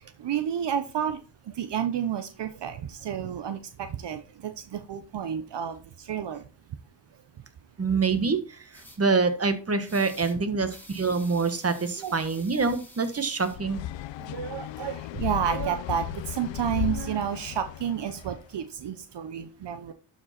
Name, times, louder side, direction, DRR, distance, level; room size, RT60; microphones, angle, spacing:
voice 1, 0.2-1.2 1.6-6.4 12.0-12.1 14.3-19.9, right 8 dB, 65° right, 9 dB, 0.9 m, -31 dB
voice 2, 7.8-13.8, right 4 dB, 35° right, 9 dB, 1.6 m, -26 dB
sound 1, 8.7-9.0 9.8-10.4 10.7-13.6, left 1 dB, 5° left, 2.4 m, -49 dB
sound 2, 13.5-18.4, left 14 dB, 85° left, 0.5 m, -35 dB
11.5 x 5.1 x 4.3 m, 0.35 s
cardioid pair, 80°, 44 cm